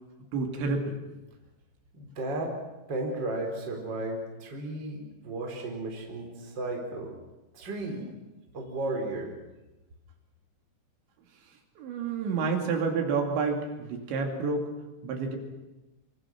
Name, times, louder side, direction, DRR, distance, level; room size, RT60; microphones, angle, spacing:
voice 1, 0.3-0.9 11.8-14.7 15.0-15.4, right 4 dB, 70° right, 3 dB, 4.8 m, -29 dB
voice 2, 1.9-2.6 2.9-7.1 7.5-8.1 8.5-9.3, right 2 dB, 25° right, 1 dB, 4.1 m, -34 dB
25.5 x 25.0 x 6.1 m, 1.0 s
omnidirectional pair, 5.5 m